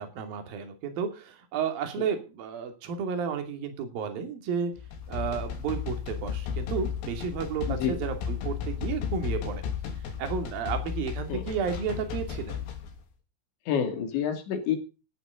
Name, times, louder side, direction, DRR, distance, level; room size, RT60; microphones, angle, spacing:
voice 1, 0.0-4.7 5.1-9.6 10.2-12.6, right 6 dB, 50° right, 6 dB, 4.0 m, -32 dB
sound 1, 4.8-12.9, left 7 dB, 90° left, 5.7 m, -34 dB
voice 2, 13.7-14.8, left 8 dB, 65° left, 7 dB, 4.5 m, -28 dB
16.5 x 12.0 x 3.8 m, 0.33 s
omnidirectional pair, 5.7 m